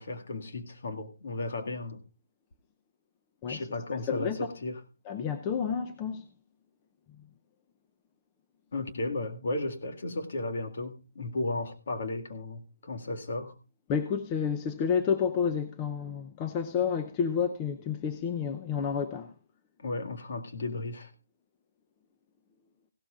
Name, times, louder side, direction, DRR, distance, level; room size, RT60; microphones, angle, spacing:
voice 1, 0.0-2.0 3.5-4.8 8.7-13.6 19.8-21.1, left 2 dB, 55° left, 2.0 m, -34 dB
voice 2, 3.9-4.5 5.1-6.2 13.9-19.3, left 7 dB, 20° left, 0.6 m, -30 dB
16.5 x 12.5 x 2.4 m
hypercardioid pair, 170°, 0 cm